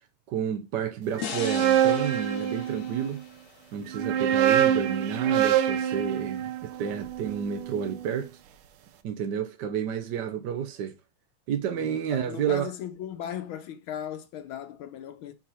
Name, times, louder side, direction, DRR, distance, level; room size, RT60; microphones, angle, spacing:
voice 1, 0.3-3.2 3.7-8.3 9.0-10.9 11.5-12.7, right 8 dB, 65° right, 1.3 m, -30 dB
sound 1, 1.2-4.4, left 8 dB, 60° left, 1.1 m, -39 dB
sound 2, 1.2-3.1 3.9-8.0, right 10 dB, 85° right, 1.6 m, -25 dB
voice 2, 11.7-15.3, left 10 dB, 80° left, 1.6 m, -37 dB
5.7 x 4.8 x 5.6 m
omnidirectional pair, 2.2 m